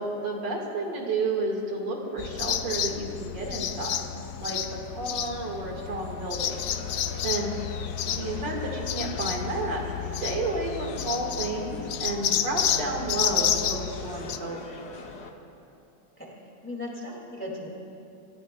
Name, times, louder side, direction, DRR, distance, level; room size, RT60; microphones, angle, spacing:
voice 1, 0.0-6.8 7.2-7.5 8.0-9.8 10.2-14.7, right 2 dB, 75° right, 0 dB, 2.4 m, -31 dB
sound 1, 2.2-14.4, left 9 dB, 75° left, 0.7 m, -31 dB
sound 2, 6.5-15.3, left 3 dB, 45° left, 1.0 m, -43 dB
voice 2, 16.6-17.7, left 1 dB, 5° left, -3 dB, 2.0 m, -37 dB
27.0 x 14.5 x 2.2 m, 2.7 s
omnidirectional pair, 2.0 m